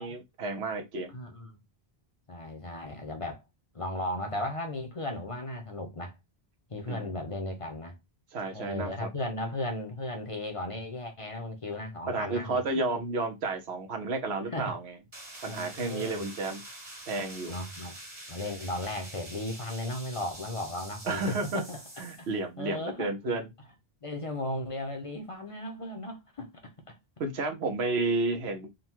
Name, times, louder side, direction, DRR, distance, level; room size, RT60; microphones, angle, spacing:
voice 1, 0.0-1.2 6.9-7.1 8.3-9.1 12.1-15.0 15.4-16.6 17.1-17.5 21.0-21.6 22.0-23.5 27.2-28.7, right 3 dB, 85° right, 1.1 m, -31 dB
voice 2, 1.1-1.6 2.3-3.4 3.7-6.1 6.7-8.0 8.5-12.6 14.5-14.7 15.4-16.3 17.5-18.0 18.3-21.8 22.2-22.3 22.6-23.1 24.0-26.5 26.9-27.0, left 1 dB, 35° left, 0.7 m, -36 dB
sound 1, 15.1-22.3, right 1 dB, 50° right, 2.0 m, -46 dB
3.8 x 2.3 x 4.4 m
omnidirectional pair, 1.1 m